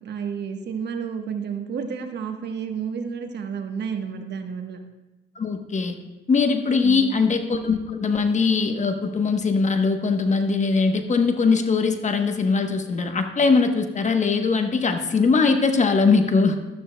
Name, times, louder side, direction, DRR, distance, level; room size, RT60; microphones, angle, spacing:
voice 1, 0.0-4.8 6.8-7.2, right 6 dB, 60° right, 5 dB, 1.1 m, -31 dB
voice 2, 5.4-6.0 6.3-16.6, left 4 dB, 35° left, 6 dB, 1.0 m, -21 dB
12.5 x 12.5 x 2.2 m, 1.0 s
cardioid pair, 90°, 20 cm